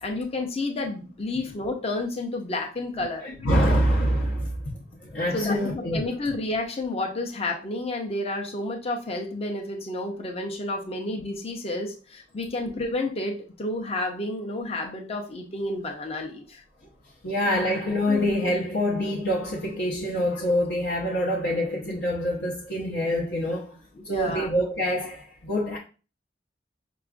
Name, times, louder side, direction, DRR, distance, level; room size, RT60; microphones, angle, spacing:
voice 1, 0.0-3.3 5.3-16.6 18.1-18.3 24.1-24.5, left 2 dB, 35° left, 0.5 m, -30 dB
voice 2, 3.0-6.0 17.2-25.8, equal, 80° left, 0.7 m, -26 dB
5.8 x 2.4 x 2.4 m
head